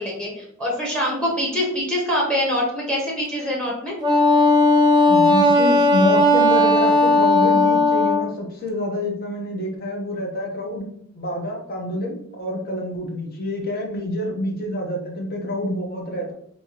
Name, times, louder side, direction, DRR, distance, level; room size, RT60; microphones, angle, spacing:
voice 1, 0.0-4.0, equal, 5° left, -2 dB, 1.2 m, -24 dB
Wind instrument woodwind instrument, 4.0-8.2, left 2 dB, 20° right, 0.5 m, -16 dB
voice 2, 5.1-10.8 11.1-16.3, left 1 dB, 45° left, 0 dB, 1.1 m, -27 dB
5.5 x 2.8 x 2.9 m, 0.69 s
head